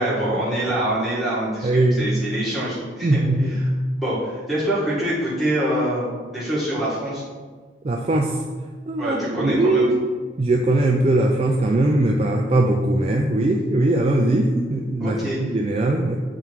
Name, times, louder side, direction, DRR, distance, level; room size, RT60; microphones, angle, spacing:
voice 1, 0.0-3.6 4.0-7.2 9.0-9.9 15.0-15.4, right 1 dB, ahead, -10 dB, 1.8 m, -25 dB
voice 2, 1.6-2.1 3.0-3.7 7.8-8.4 8.9-10.1 10.4-16.2, right 2 dB, 30° right, 1 dB, 0.4 m, -20 dB
6.8 x 3.7 x 4.7 m, 1.4 s
head